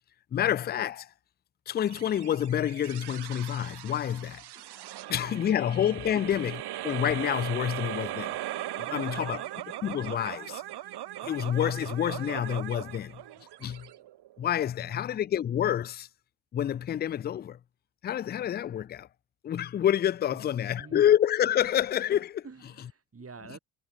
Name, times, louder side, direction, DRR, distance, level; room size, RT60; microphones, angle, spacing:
voice 1, 0.3-1.1 1.7-4.4 5.1-6.5 6.8-8.3 8.8-9.4 9.8-10.6 11.2-13.2 13.6-13.9 14.4-16.1 16.5-17.6 18.0-19.1 19.4-22.4, left 10 dB, 20° left, 0.4 m, -28 dB
sound 1, 1.9-14.5, right 14 dB, 50° right, 1.5 m, -39 dB
voice 2, 8.8-9.5 14.7-15.1 20.6-21.1 22.4-23.6, right 5 dB, 25° right, 5.9 m, -48 dB
hypercardioid pair, 60°, 50 cm